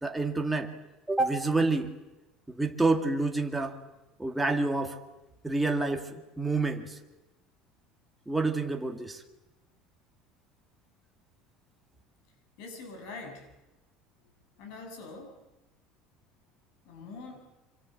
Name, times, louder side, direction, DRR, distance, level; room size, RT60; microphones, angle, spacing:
voice 1, 0.0-0.7 1.1-2.0 2.5-3.8 4.2-5.0 5.4-7.0 8.3-9.2, right 3 dB, 5° right, 3 dB, 2.0 m, -28 dB
voice 2, 12.6-13.5 14.6-15.4 16.8-17.6, left 3 dB, 65° left, 5 dB, 7.0 m, -44 dB
25.5 x 25.5 x 7.6 m, 1.0 s
cardioid pair, 165°, 0 cm